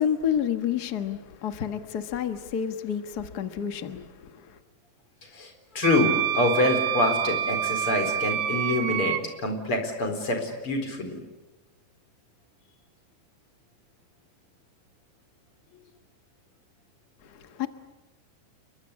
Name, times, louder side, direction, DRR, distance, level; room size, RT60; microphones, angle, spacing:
voice 1, 0.0-4.6 17.2-17.7, left 8 dB, 85° left, 0.8 m, -30 dB
voice 2, 5.3-11.2, left 2 dB, 35° left, 5.0 m, -26 dB
Wind instrument woodwind instrument, 5.8-9.2, right 11 dB, 75° right, 2.8 m, -27 dB
30.0 x 22.5 x 8.6 m
omnidirectional pair, 4.1 m